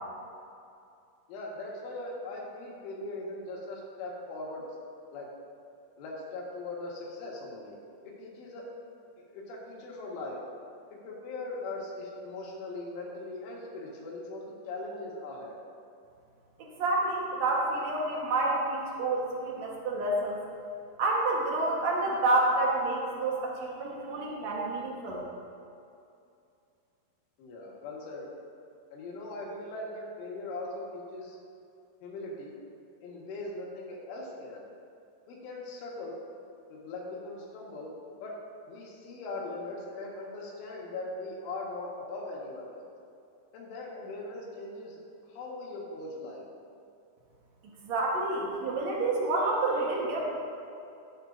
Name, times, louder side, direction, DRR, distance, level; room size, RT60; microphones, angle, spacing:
voice 1, 1.3-4.6 5.1-5.3 6.0-7.8 8.0-8.6 9.2-10.4 10.9-15.6 27.4-28.3 28.9-31.4 32.0-32.6 33.0-34.6 35.3-36.2 36.7-37.9 38.2-38.4 38.7-42.8 43.5-45.0 45.3-46.4, left 2 dB, 85° left, -3 dB, 4.2 m, -40 dB
voice 2, 16.6-20.4 21.0-25.2 47.8-50.2, right 2 dB, 75° right, -3 dB, 1.6 m, -29 dB
16.5 x 9.2 x 2.7 m, 2.6 s
omnidirectional pair, 5.4 m